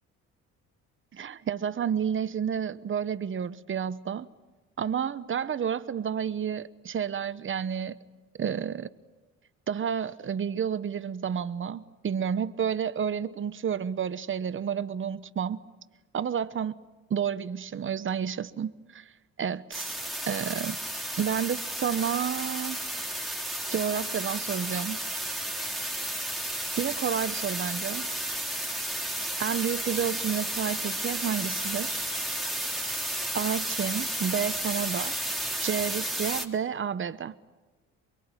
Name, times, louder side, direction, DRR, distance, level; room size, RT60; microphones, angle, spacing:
voice 1, 1.1-4.3 4.8-8.0 8.4-8.9 9.7-15.6 16.1-16.8 17.1-19.1 19.4-20.8 21.1-22.8 23.7-25.0 26.7-28.1 29.4-32.1 33.3-35.2 35.6-37.3, right 8 dB, 40° right, 1.1 m, -30 dB
sound 1, 19.7-36.4, right 1 dB, ahead, 3.4 m, -32 dB
24.5 x 23.5 x 9.1 m
cardioid pair, 90°, 31 cm